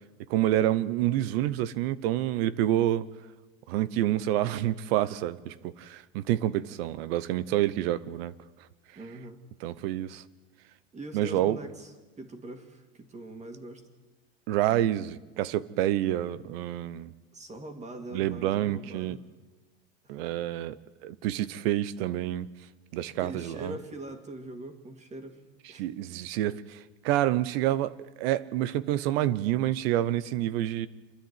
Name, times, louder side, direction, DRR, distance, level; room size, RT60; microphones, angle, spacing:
voice 1, 0.3-3.1 3.7-8.3 9.6-10.2 11.1-11.6 14.5-17.1 18.1-19.2 20.1-20.8 21.0-22.5 22.9-23.8 25.8-30.9, right 13 dB, 65° right, 0.9 m, -28 dB
voice 2, 9.0-9.4 10.9-11.9 12.2-13.9 17.3-19.2 20.0-20.3 23.2-25.4 25.7-25.9, right 1 dB, 20° right, 2.4 m, -42 dB
27.0 x 10.5 x 9.5 m
supercardioid pair, 110°, 32 cm